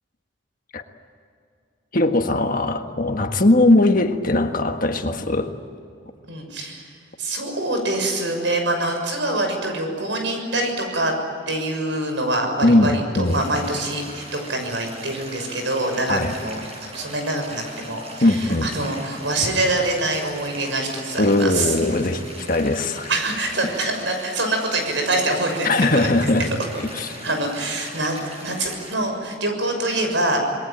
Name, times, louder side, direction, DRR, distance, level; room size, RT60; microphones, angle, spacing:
voice 1, 1.9-5.5 12.6-13.4 16.1-16.3 18.2-18.7 21.2-23.1 25.6-26.5 26.8-27.2, left 2 dB, 45° left, 6 dB, 1.6 m, -20 dB
voice 2, 6.3-6.9 7.2-11.1 11.5-16.6 16.9-21.7 23.1-26.3 27.2-30.4, right 2 dB, 75° right, 4 dB, 6.4 m, -25 dB
Stream, 13.2-29.0, right 1 dB, 30° right, 6.9 m, -39 dB
27.5 x 21.5 x 9.1 m, 2.5 s
head